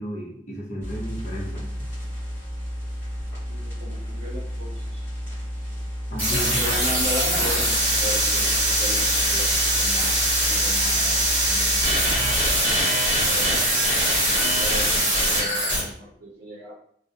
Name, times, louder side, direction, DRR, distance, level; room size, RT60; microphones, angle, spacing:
voice 1, 0.0-1.7 6.1-6.6, equal, 40° left, -4 dB, 0.7 m, -33 dB
sound 1, 0.8-12.6, equal, 15° left, 1.0 m, -32 dB
voice 2, 3.5-5.0 6.6-9.5 9.7-13.7 14.3-16.7, equal, 70° right, -5 dB, 0.6 m, -37 dB
sound 2, 6.2-15.8, right 1 dB, 10° right, 1.2 m, -22 dB
2.3 x 2.1 x 2.7 m, 0.65 s
head